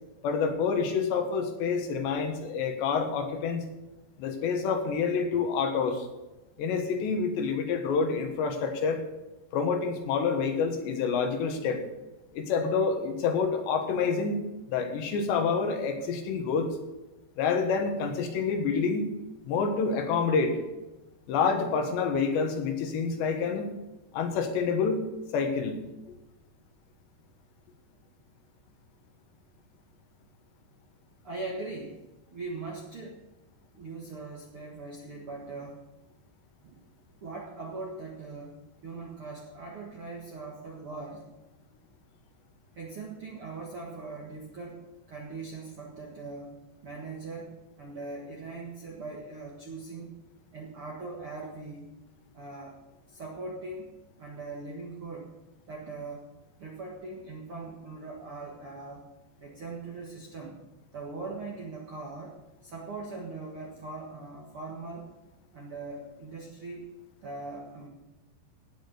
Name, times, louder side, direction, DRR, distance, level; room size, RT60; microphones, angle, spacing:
voice 1, 0.2-3.6 4.2-6.1 6.6-9.0 9.5-11.8 12.3-14.4 14.7-16.7 17.4-19.1 19.5-20.6 21.3-23.7 24.1-25.0 25.3-25.8, left 5 dB, 75° left, 5 dB, 3.6 m, -27 dB
voice 2, 31.2-32.0 32.3-33.2 33.7-35.8 36.6-36.8 37.2-41.3 42.7-44.8 45.1-50.1 50.5-52.0 52.3-52.8 53.1-53.9 54.2-55.3 55.7-56.3 56.6-59.1 59.4-60.6 60.9-62.3 62.6-65.1 65.5-66.8 67.2-67.9, right 3 dB, 60° right, -2 dB, 1.4 m, -40 dB
17.5 x 6.4 x 6.7 m, 1.0 s
omnidirectional pair, 5.1 m